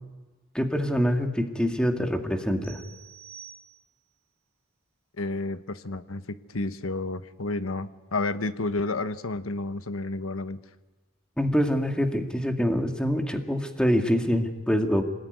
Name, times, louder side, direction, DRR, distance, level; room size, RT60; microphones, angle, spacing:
voice 1, 0.5-2.8 11.4-15.0, equal, 5° left, 4 dB, 2.1 m, -25 dB
sound 1, 2.6-4.2, right 8 dB, 30° left, 7.0 m, -48 dB
voice 2, 5.2-10.6, left 2 dB, 85° left, 11 dB, 1.2 m, -31 dB
27.0 x 19.5 x 9.5 m, 1.3 s
head